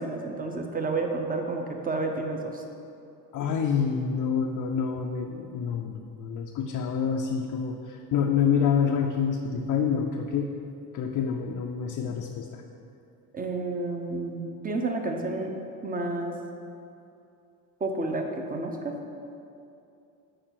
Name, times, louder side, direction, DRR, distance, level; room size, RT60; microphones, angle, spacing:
voice 1, 0.0-2.6 13.3-15.5 15.8-16.4 17.8-18.9, right 3 dB, 20° right, 4 dB, 0.7 m, -30 dB
voice 2, 3.3-10.5 10.9-12.6, left 7 dB, 45° left, 1 dB, 0.5 m, -27 dB
6.7 x 4.8 x 5.8 m, 2.6 s
cardioid pair, 115°, 44 cm